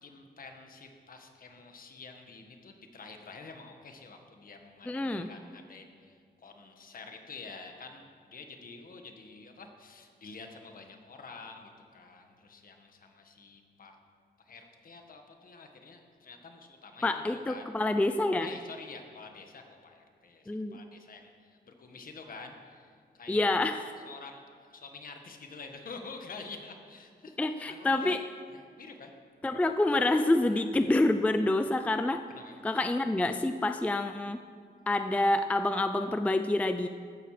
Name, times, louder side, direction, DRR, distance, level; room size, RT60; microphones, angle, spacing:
voice 1, 0.0-14.0 14.4-17.6 18.4-23.5 24.0-28.2 28.5-29.1 30.4-30.6 32.3-32.6, left 4 dB, 55° left, 4 dB, 1.6 m, -48 dB
voice 2, 4.9-5.3 17.0-18.5 20.5-20.8 23.3-23.9 27.4-28.3 29.4-32.2 32.6-34.4 34.9-36.9, left 2 dB, 10° left, 9 dB, 0.4 m, -27 dB
15.0 x 13.0 x 5.0 m, 2.1 s
wide cardioid pair, 160°, 18 cm